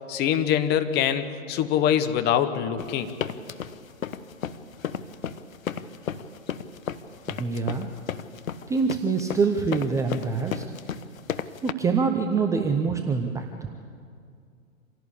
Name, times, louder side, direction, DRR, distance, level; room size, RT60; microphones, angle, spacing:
voice 1, 0.1-3.1, left 9 dB, 25° left, 9 dB, 1.2 m, -24 dB
sound 1, 2.8-11.7, left 8 dB, 70° left, 1.2 m, -33 dB
voice 2, 7.3-7.9 8.7-10.6 11.6-13.5, right 5 dB, 5° right, 4 dB, 0.6 m, -25 dB
26.0 x 17.0 x 8.6 m, 2.3 s
hypercardioid pair, 125°, 42 cm